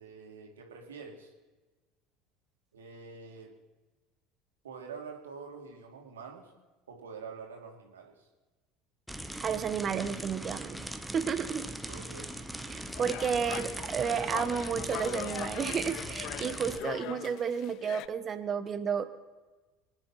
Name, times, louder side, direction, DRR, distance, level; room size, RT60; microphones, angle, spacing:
voice 1, 0.0-1.3 2.7-3.5 4.6-6.5 6.9-8.3 11.9-12.3, right 5 dB, 75° right, 2 dB, 2.6 m, -46 dB
sound 1, 9.1-16.8, right 1 dB, ahead, 1.3 m, -40 dB
voice 2, 9.4-10.8 11.1-11.7 12.7-19.0, right 7 dB, 35° right, 11 dB, 1.3 m, -32 dB
sound 2, 12.9-18.1, left 15 dB, 55° left, 0.5 m, -41 dB
25.0 x 9.8 x 5.7 m, 1.2 s
figure-of-eight pair, 70°, 0 cm